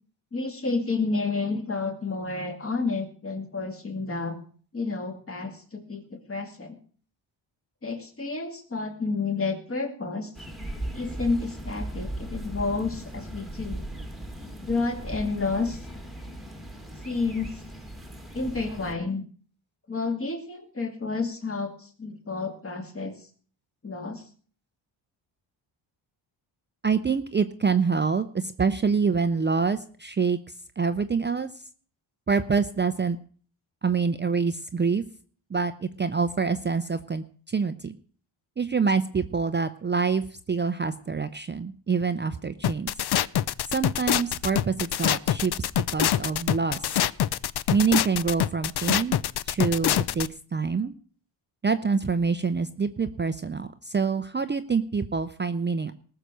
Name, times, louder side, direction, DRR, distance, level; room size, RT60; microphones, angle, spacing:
voice 1, 0.3-4.4 4.7-6.8 7.8-10.3 10.9-13.8 14.6-15.8 17.0-17.6 18.3-19.2 19.9-23.1 23.8-24.2, left 3 dB, 30° left, 5 dB, 2.4 m, -30 dB
sound 1, 10.3-18.9, right 1 dB, ahead, 1.8 m, -38 dB
voice 2, 26.8-30.4 30.8-31.5 32.3-33.2 33.8-35.0 35.5-38.0 38.6-42.9 43.7-46.9 47.7-49.2 49.5-50.9 51.6-55.9, right 5 dB, 25° right, 9 dB, 0.6 m, -26 dB
sound 2, 42.6-50.3, left 11 dB, 55° left, 0.6 m, -25 dB
19.5 x 6.9 x 6.2 m, 0.44 s
wide cardioid pair, 145°, 47 cm